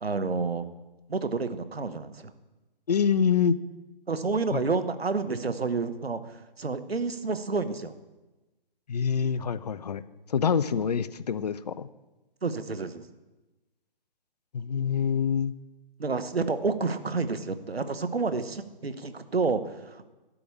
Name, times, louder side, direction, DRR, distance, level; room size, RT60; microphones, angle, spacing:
voice 1, 0.0-0.6 1.1-2.3 4.1-7.9 12.4-13.1 16.0-20.1, right 4 dB, 90° right, 11 dB, 0.9 m, -29 dB
voice 2, 2.9-3.6 4.5-4.6 8.9-10.0 10.3-11.9 14.5-15.5, left 7 dB, 45° left, 16 dB, 0.4 m, -26 dB
12.0 x 4.9 x 8.3 m, 1.1 s
figure-of-eight pair, 140°, 30 cm